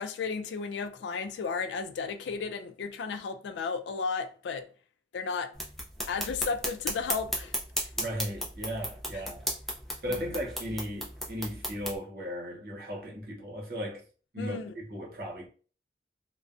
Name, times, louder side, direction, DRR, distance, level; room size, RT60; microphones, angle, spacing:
voice 1, 0.0-4.7 5.1-5.5 6.1-7.5 14.4-14.7, left 5 dB, 85° left, 0.3 m, -33 dB
sound 1, 5.5-12.0, equal, ahead, 0.4 m, -35 dB
voice 2, 8.0-9.4 10.0-14.0 14.3-15.5, equal, 55° right, 0.7 m, -36 dB
2.5 x 2.1 x 2.4 m
head